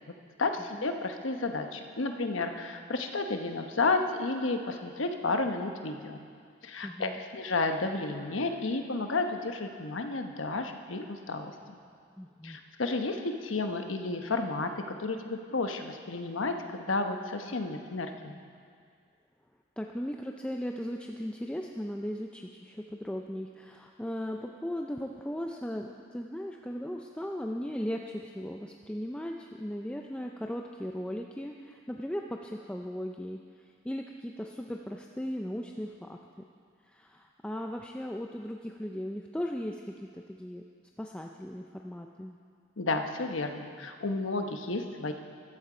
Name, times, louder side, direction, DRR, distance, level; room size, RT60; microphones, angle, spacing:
voice 1, 0.4-6.2 6.6-11.5 12.4-18.4 42.8-45.1, left 3 dB, 75° left, 6 dB, 1.0 m, -32 dB
voice 2, 6.8-7.2 12.2-12.6 19.8-36.4 36.8-40.6 41.0-42.4, equal, 5° left, 2 dB, 0.4 m, -37 dB
14.5 x 12.0 x 5.0 m, 2.2 s
head